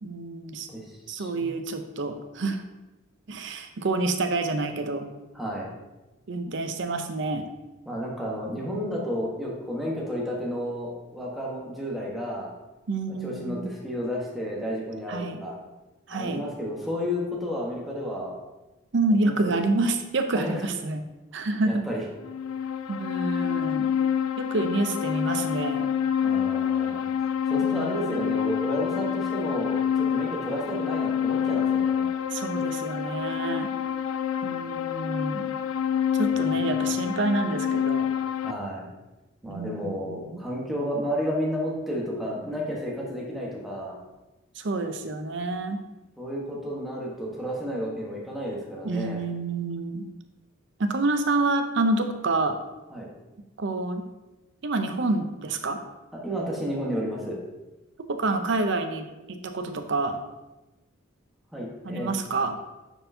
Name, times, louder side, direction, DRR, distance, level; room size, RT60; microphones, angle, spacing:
voice 1, 0.0-0.7 1.1-2.6 3.3-5.0 6.3-7.5 12.9-13.7 15.1-15.4 16.1-16.4 18.9-21.0 21.3-21.8 22.9-23.9 24.4-25.9 27.6-28.2 32.3-33.7 34.4-35.5 36.1-38.1 39.4-40.2 44.6-45.8 48.8-50.0 50.8-52.6 53.6-54.0 54.6-55.8 58.1-60.2 61.8-62.6, right 2 dB, 60° right, 7 dB, 0.6 m, -28 dB
voice 2, 0.7-1.6 5.3-5.7 7.9-12.5 13.2-15.6 16.1-18.4 19.2-19.6 20.3-20.6 21.3-22.0 26.2-27.1 27.5-32.1 36.2-36.4 38.4-38.9 39.4-44.0 46.2-49.2 52.9-53.1 56.1-57.4 61.5-62.1, equal, ahead, -4 dB, 1.2 m, -32 dB
sound 1, 22.2-38.5, left 8 dB, 90° left, 0.3 m, -27 dB
9.0 x 4.5 x 2.7 m, 1.1 s
head